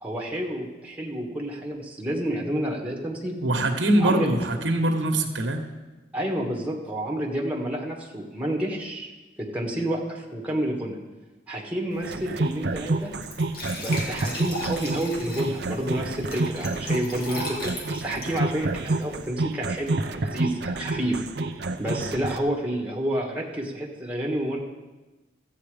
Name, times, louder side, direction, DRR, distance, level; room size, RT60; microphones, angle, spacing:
voice 1, 0.0-3.4 4.0-4.3 6.1-9.1 9.4-11.0 11.5-13.1 13.7-21.5 21.8-24.6, right 1 dB, 10° right, -1 dB, 1.6 m, -29 dB
voice 2, 3.4-5.6, right 1 dB, 85° right, 5 dB, 1.3 m, -23 dB
Glass / Trickle dribble / Fill (with liquid), 11.9-19.3, left 2 dB, 55° left, 2.2 m, -39 dB
sound 1, 12.0-22.4, right 2 dB, 60° right, 0.6 m, -29 dB
14.0 x 8.4 x 5.0 m, 1.1 s
head